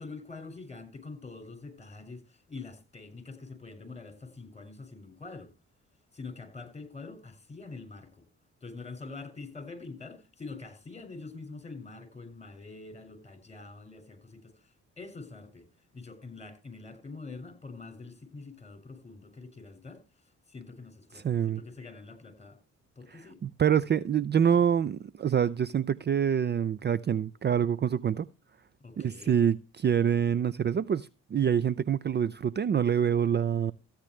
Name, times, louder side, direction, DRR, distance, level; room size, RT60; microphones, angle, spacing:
voice 1, 0.0-5.5 6.1-8.2 8.6-22.6 22.9-23.4 28.8-29.4, left 3 dB, 20° left, 6.7 m, -45 dB
voice 2, 21.1-21.6 23.1-28.3 29.0-33.7, right 8 dB, 35° right, 0.5 m, -26 dB
15.0 x 10.0 x 3.2 m
cardioid pair, 90°, 30 cm